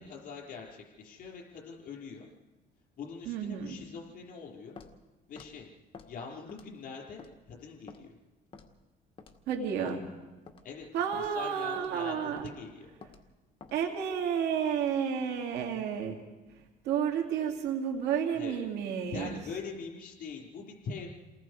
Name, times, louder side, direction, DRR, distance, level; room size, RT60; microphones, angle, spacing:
voice 1, 0.1-2.3 3.0-4.8 5.3-5.7 6.1-8.1 10.6-10.9 11.1-12.9 18.4-18.6 19.1-21.1, left 5 dB, 55° left, -2 dB, 4.9 m, -43 dB
voice 2, 3.3-3.8 9.5-10.1 10.9-12.5 13.7-16.2 16.8-19.4, right 8 dB, 85° right, 2 dB, 2.7 m, -31 dB
Walk footsteps, 4.8-5.0 5.4-5.5 5.9-6.1 6.5-6.8 7.2-7.3 7.9-8.0 8.5-8.8 9.2-9.4 9.9-10.0 10.5-10.7 11.1-11.4 11.8-11.9 12.4-12.5 13.0-13.2 13.6-13.8, left 4 dB, 30° left, 1.9 m, -49 dB
29.0 x 19.5 x 4.9 m, 1.2 s
cardioid pair, 110°, 17 cm